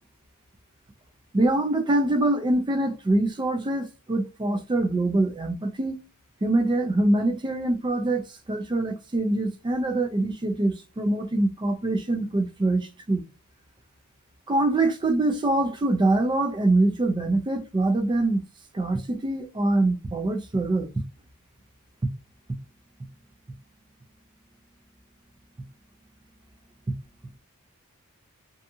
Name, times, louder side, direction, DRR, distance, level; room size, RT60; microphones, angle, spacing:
voice 1, 1.3-6.0 6.4-13.2 14.5-18.4 18.7-20.9, right 2 dB, 20° right, 0.4 m, -24 dB
2.7 x 2.3 x 2.6 m
head